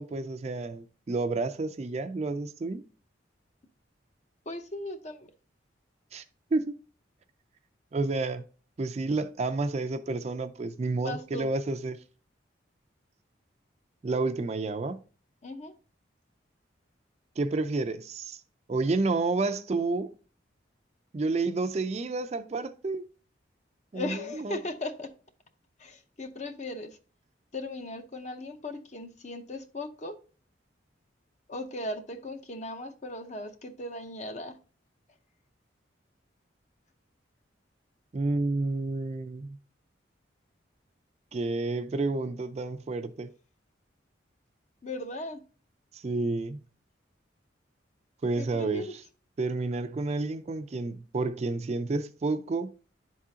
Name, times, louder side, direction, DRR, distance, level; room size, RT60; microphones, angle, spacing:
voice 1, 0.0-2.8 6.1-6.2 6.5-6.8 7.9-8.4 8.8-12.0 14.0-15.0 17.4-18.4 18.7-20.1 21.1-23.0 23.9-24.6 38.1-39.6 41.3-43.3 45.9-46.6 48.2-49.0 49.4-52.7, right 3 dB, 35° right, 0.3 m, -30 dB
voice 2, 4.5-5.3 11.0-11.5 15.4-15.7 23.9-25.1 25.8-27.0 27.5-30.2 31.5-34.6 44.8-45.4 48.4-48.8, left 2 dB, 35° left, 0.7 m, -37 dB
11.0 x 3.7 x 2.7 m
head